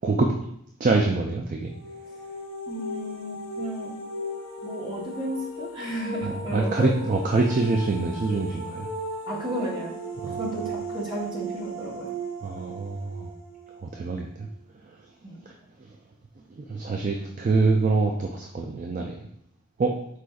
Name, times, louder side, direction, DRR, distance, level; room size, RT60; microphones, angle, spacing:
voice 1, 0.0-0.3 0.8-1.7 6.2-8.9 10.2-10.4 12.4-13.3 13.8-14.5 15.5-15.6 16.5-19.3 19.8-19.9, right 3 dB, 35° right, 1 dB, 0.3 m, -25 dB
sound 1, 1.6-14.5, right 1 dB, 60° left, 0.9 m, -37 dB
voice 2, 2.7-3.9 4.6-6.9 9.3-10.0 10.4-12.1 15.2-15.4, right 1 dB, 20° right, -4 dB, 0.9 m, -33 dB
4.9 x 4.1 x 2.3 m, 0.72 s
head